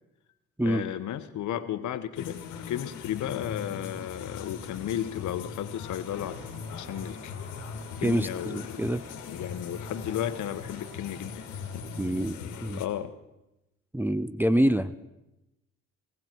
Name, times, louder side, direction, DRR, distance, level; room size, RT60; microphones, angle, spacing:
voice 1, 0.6-2.4 2.7-6.4 6.8-7.3 8.0-8.9 9.3-11.4 11.7-11.8 12.8-13.1, left 11 dB, 75° left, 11 dB, 1.1 m, -34 dB
sound 1, 2.1-12.9, left 6 dB, 90° left, 1.7 m, -40 dB
sound 2, 6.1-12.1, right 1 dB, 45° right, 4.3 m, -51 dB
voice 2, 8.0-9.0 12.0-12.8 13.9-15.1, equal, 5° right, 9 dB, 0.5 m, -26 dB
17.0 x 15.5 x 4.5 m, 0.96 s
cardioid pair, 90°, 30 cm